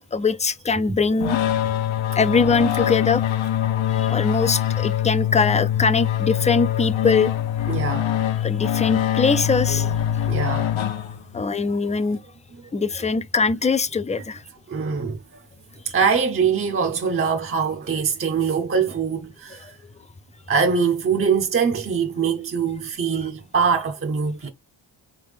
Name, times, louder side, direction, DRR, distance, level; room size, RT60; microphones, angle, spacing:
voice 1, 0.0-1.4 2.2-3.3 3.9-7.4 8.4-10.0 11.3-12.2 12.7-14.4 19.5-19.7, left 4 dB, 15° left, 0.3 m, -22 dB
sound 1, 1.2-11.5, left 11 dB, 75° left, 0.7 m, -23 dB
voice 2, 7.7-8.1 10.3-10.7 14.7-15.2 15.9-19.7 20.5-24.5, right 6 dB, 30° right, 0.6 m, -23 dB
4.3 x 3.4 x 3.4 m
cardioid pair, 105°, 48 cm